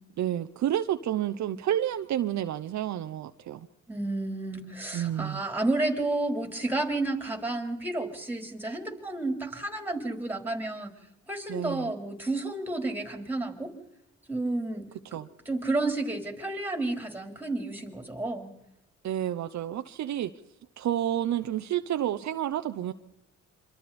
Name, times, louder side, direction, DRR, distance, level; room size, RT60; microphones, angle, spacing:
voice 1, 0.2-3.7 4.9-5.4 11.5-11.9 15.1-15.3 19.0-20.3 20.8-22.9, right 11 dB, 65° right, 10 dB, 0.9 m, -30 dB
voice 2, 3.9-10.9 11.3-13.7 14.3-18.5, right 2 dB, 5° right, 4 dB, 4.2 m, -31 dB
26.5 x 24.5 x 4.3 m, 0.88 s
cardioid pair, 90°, 30 cm